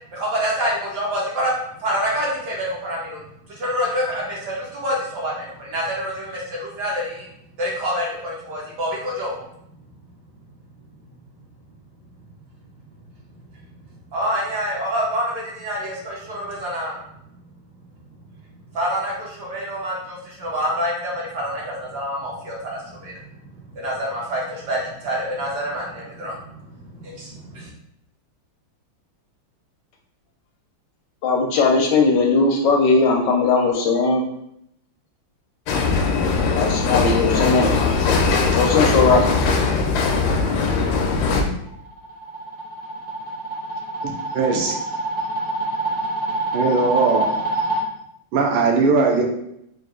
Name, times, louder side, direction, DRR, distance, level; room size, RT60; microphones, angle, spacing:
voice 1, 0.1-1.5 1.8-7.3 7.6-9.4 14.1-17.0 18.7-23.1 23.4-26.6 26.8-27.7, equal, 65° right, -4 dB, 1.2 m, -27 dB
voice 2, 31.2-34.2 36.5-37.9 38.6-39.3, left 4 dB, 75° left, 2 dB, 1.0 m, -18 dB
sound 1, 35.7-41.4, left 4 dB, 90° left, 1.5 m, -20 dB
sound 2, 41.7-47.8, right 2 dB, 45° right, 0.7 m, -26 dB
voice 3, 44.0-44.7 46.5-47.3 48.3-49.2, right 4 dB, 85° right, 1 dB, 1.5 m, -19 dB
4.0 x 2.4 x 3.6 m, 0.76 s
omnidirectional pair, 2.3 m